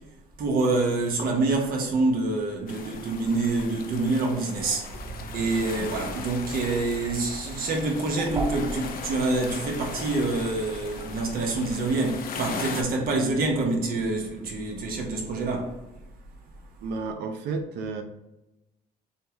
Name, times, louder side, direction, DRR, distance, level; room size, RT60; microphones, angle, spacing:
voice 1, 0.4-4.9 5.3-15.8, right 3 dB, 60° right, 1.1 m, -26 dB
sound 1, 2.7-12.8, left 5 dB, 60° left, 0.6 m, -39 dB
sound 2, 4.6-11.9, right 2 dB, 20° right, 0.4 m, -39 dB
voice 2, 16.8-18.0, right 4 dB, 80° right, 0.7 m, -31 dB
6.8 x 2.4 x 2.9 m
cardioid pair, 110°, 17 cm